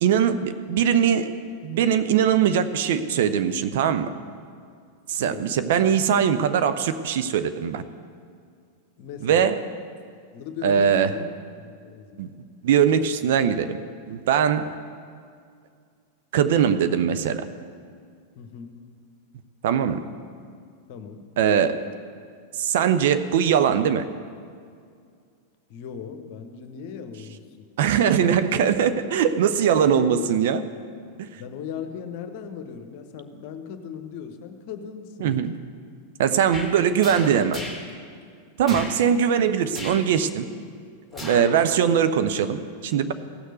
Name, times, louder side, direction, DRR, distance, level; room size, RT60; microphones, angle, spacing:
voice 1, 0.0-1.3 1.6-4.1 5.1-7.8 9.2-9.6 10.6-11.1 12.2-12.3 12.6-13.8 14.1-14.7 16.3-17.4 19.6-20.0 21.4-21.8 22.6-24.0 27.8-30.6 31.2-31.3 35.2-35.5 36.2-37.6 38.6-40.5 41.2-43.1, right 8 dB, 55° right, 11 dB, 0.6 m, -21 dB
voice 2, 5.2-5.5 9.0-9.5 10.3-12.2 18.4-18.7 20.9-21.2 25.7-27.7 28.5-29.2 29.9-30.3 31.4-35.5 41.1-41.4, left 7 dB, 45° left, 8 dB, 1.0 m, -38 dB
sound 1, 36.5-36.7 37.0-37.8 38.6-38.9 39.7-40.1 41.1-41.6 42.0-42.1, left 1 dB, 5° right, 2.2 m, -35 dB
16.0 x 6.5 x 8.0 m, 2.2 s
figure-of-eight pair, 90°, 0 cm